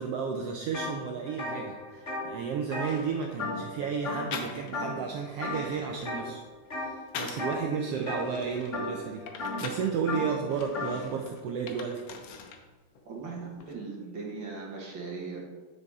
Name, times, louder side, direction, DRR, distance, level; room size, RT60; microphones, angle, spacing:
voice 1, 0.0-6.4 6.7-12.0, right 6 dB, 70° right, 2 dB, 1.5 m, -33 dB
sound 1, 0.7-0.9 1.3-3.8 4.0-4.4 4.7-5.1 5.4-6.2 6.7-7.0 7.3-11.0, left 2 dB, 30° left, 1.6 m, -35 dB
sound 2, 2.3-2.4 2.7-3.5 4.3-4.9 5.3-7.6 8.0-9.9 10.5-12.6 12.9-13.7, left 6 dB, 70° left, 1.9 m, -43 dB
voice 2, 13.0-15.5, right 4 dB, 50° right, -2 dB, 1.7 m, -39 dB
10.0 x 5.5 x 4.8 m, 1.3 s
omnidirectional pair, 3.3 m